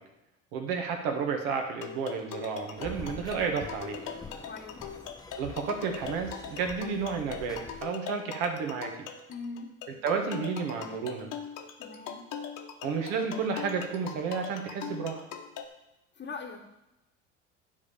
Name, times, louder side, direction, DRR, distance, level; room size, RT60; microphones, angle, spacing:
voice 1, 0.5-4.0 5.4-8.9 10.0-11.3 12.8-15.3, right 5 dB, 70° right, 3 dB, 1.7 m, -31 dB
sound 1, 1.8-15.6, left 7 dB, 55° left, 1.3 m, -41 dB
sound 2, 2.8-7.8, left 3 dB, 10° left, 0.7 m, -46 dB
voice 2, 4.4-4.8 9.3-9.7 11.8-12.2 16.2-16.6, left 4 dB, 30° left, -2 dB, 1.3 m, -41 dB
10.5 x 3.8 x 6.9 m, 0.92 s
hypercardioid pair, 70°, 36 cm